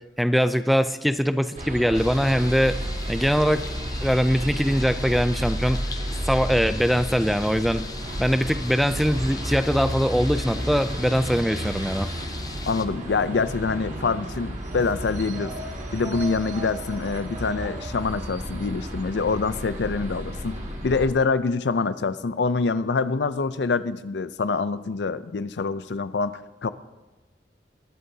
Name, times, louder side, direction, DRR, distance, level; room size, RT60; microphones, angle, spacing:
voice 1, 0.2-2.8 3.1-3.6 4.0-5.9 6.3-7.9 8.2-12.1, equal, ahead, 11 dB, 0.4 m, -22 dB
sound 1, 1.6-21.1, right 1 dB, 45° right, 1.9 m, -32 dB
sound 2, 1.9-12.9, left 4 dB, 20° left, 0.7 m, -40 dB
voice 2, 12.7-15.5 15.9-20.5 20.8-26.7, left 4 dB, 75° left, 14 dB, 0.5 m, -25 dB
21.5 x 11.5 x 2.8 m, 1.1 s
head